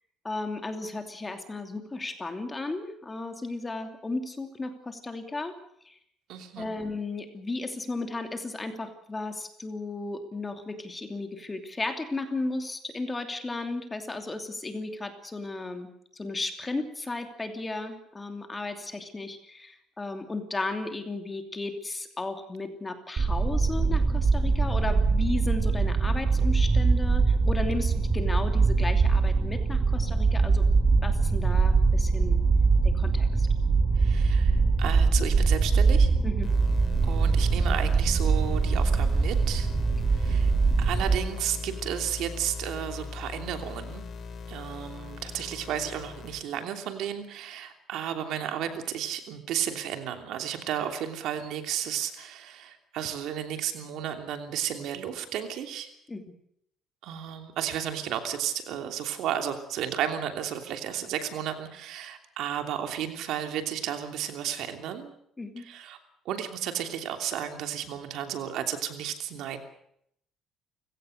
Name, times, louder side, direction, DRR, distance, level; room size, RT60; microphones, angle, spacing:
voice 1, 0.2-5.6 5.8-6.0 6.6-32.4 32.8-33.5 36.2-36.5 40.3-40.4 56.1-56.3 65.4-65.6, left 2 dB, 15° left, 6 dB, 2.8 m, -35 dB
voice 2, 6.3-6.7 34.0-36.1 37.0-39.7 40.1-40.5 40.8-44.0 44.5-55.9 57.0-65.1 65.6-66.0 66.2-69.6, right 10 dB, 75° right, 6 dB, 3.0 m, -33 dB
sound 1, 23.2-41.2, right 4 dB, 30° right, 3.6 m, -23 dB
sound 2, 36.4-46.4, left 4 dB, 40° left, 3.2 m, -40 dB
29.5 x 17.0 x 6.6 m, 0.71 s
cardioid pair, 135°, 0 cm